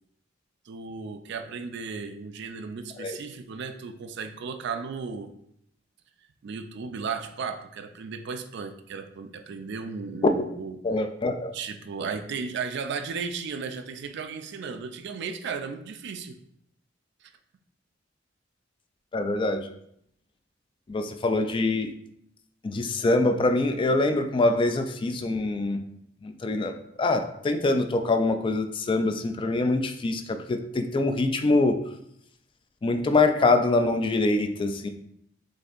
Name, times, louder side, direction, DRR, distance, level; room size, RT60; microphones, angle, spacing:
voice 1, 0.7-5.3 6.4-10.8 11.5-16.4 17.2-17.3, right 5 dB, 60° right, 8 dB, 0.4 m, -35 dB
voice 2, 10.8-11.5 19.1-19.7 20.9-21.9 22.6-25.8 26.2-31.8 32.8-34.9, left 2 dB, 25° left, 7 dB, 0.3 m, -24 dB
6.4 x 2.6 x 2.5 m, 0.73 s
head